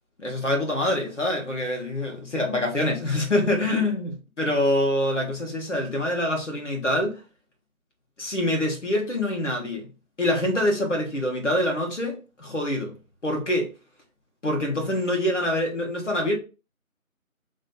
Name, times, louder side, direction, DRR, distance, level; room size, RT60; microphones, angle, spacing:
voice 1, 0.2-7.2 8.2-9.9 10.2-12.9 13.2-13.7 14.4-16.3, left 1 dB, 55° left, 1.4 m, -25 dB
4.2 x 3.1 x 2.4 m
figure-of-eight pair, 170°, 42 cm